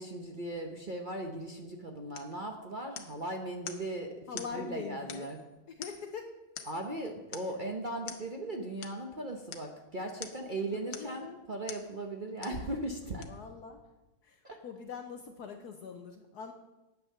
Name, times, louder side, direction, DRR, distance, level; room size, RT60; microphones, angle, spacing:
voice 1, 0.0-5.4 6.7-13.3 14.4-14.6, right 1 dB, 40° right, 2 dB, 0.7 m, -38 dB
sound 1, 2.1-2.4 3.0-3.2 3.7-3.9 4.4-4.6 5.1-5.4 5.8-6.2 6.6-6.9 7.3-7.6 8.1-8.3 8.8-9.0 9.5-9.7 10.2-10.5 10.9-11.2 11.7-11.9 12.4-12.6 13.2-13.3, left 8 dB, 85° left, 1.6 m, -45 dB
voice 2, 4.3-5.3 5.8-6.3 10.7-11.4 13.2-13.8 14.2-16.5, left 6 dB, 65° left, 5 dB, 1.2 m, -43 dB
9.4 x 8.5 x 6.6 m, 1.0 s
omnidirectional pair, 2.1 m